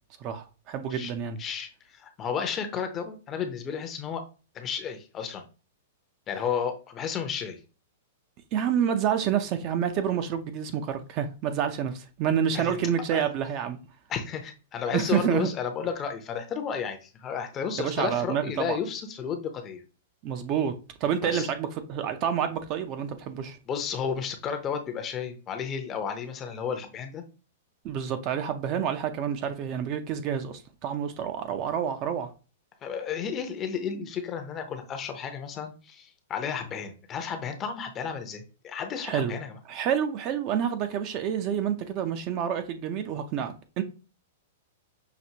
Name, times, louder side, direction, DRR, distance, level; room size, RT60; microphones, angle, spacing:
voice 1, 0.2-1.4 8.5-13.8 14.9-15.5 17.8-18.8 20.2-20.7 21.0-23.6 27.8-32.3 39.0-39.3 39.7-43.8, right 8 dB, 40° right, 0.5 m, -28 dB
voice 2, 1.4-4.2 4.5-5.4 6.3-7.6 12.5-12.8 13.1-13.3 14.1-19.8 21.2-21.5 23.7-27.2 32.8-39.6, left 7 dB, 25° left, 0.6 m, -32 dB
5.8 x 2.5 x 2.8 m
hypercardioid pair, 140°, 0 cm